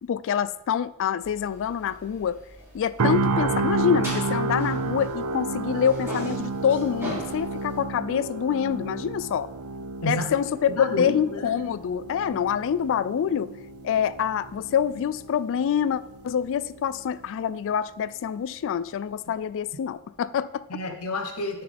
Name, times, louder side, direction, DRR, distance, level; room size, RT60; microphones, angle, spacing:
voice 1, 0.0-2.4 2.7-9.5 10.0-13.5 13.8-20.6, left 8 dB, 60° left, 16 dB, 0.3 m, -26 dB
sound 1, 1.2-5.4 5.7-7.8, equal, 10° right, 3.0 m, -40 dB
sound 2, 3.0-17.0 17.3-17.6, right 3 dB, 75° right, 0.5 m, -31 dB
voice 2, 10.0-10.3 10.7-11.5 20.7-21.6, left 1 dB, 80° left, 4 dB, 1.0 m, -30 dB
13.0 x 5.8 x 3.5 m, 0.91 s
head